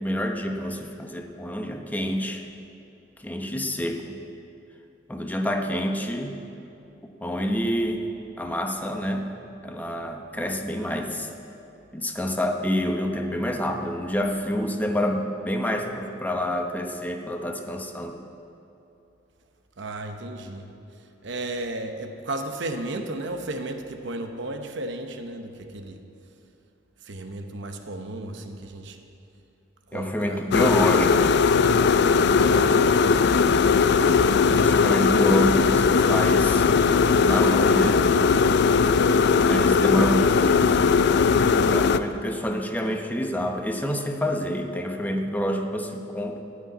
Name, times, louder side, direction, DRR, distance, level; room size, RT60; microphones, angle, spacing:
voice 1, 0.0-2.5 3.2-4.2 5.1-6.4 7.2-8.0 8.4-9.3 9.6-11.3 11.9-18.2 29.9-31.3 34.5-36.7 37.2-38.2 39.5-40.8 41.7-46.4, equal, 10° left, 3 dB, 0.8 m, -27 dB
voice 2, 19.8-20.7 21.2-26.0 27.0-29.0 29.9-30.6 32.4-32.8, right 2 dB, 65° right, 6 dB, 0.9 m, -34 dB
sound 1, 30.5-42.0, left 5 dB, 60° left, 0.4 m, -19 dB
12.5 x 6.4 x 9.3 m, 2.7 s
head